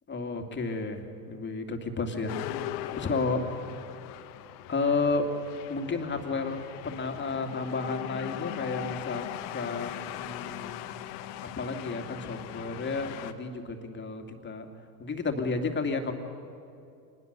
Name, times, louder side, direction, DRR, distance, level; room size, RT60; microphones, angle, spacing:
voice 1, 0.1-3.7 4.7-5.3 5.7-9.2 9.5-10.8 11.4-14.7 15.0-16.1, left 3 dB, 20° left, 5 dB, 2.4 m, -32 dB
sound 1, 2.3-13.3, left 13 dB, 65° left, 1.3 m, -39 dB
25.5 x 20.0 x 6.8 m, 2.5 s
hypercardioid pair, 100°, 49 cm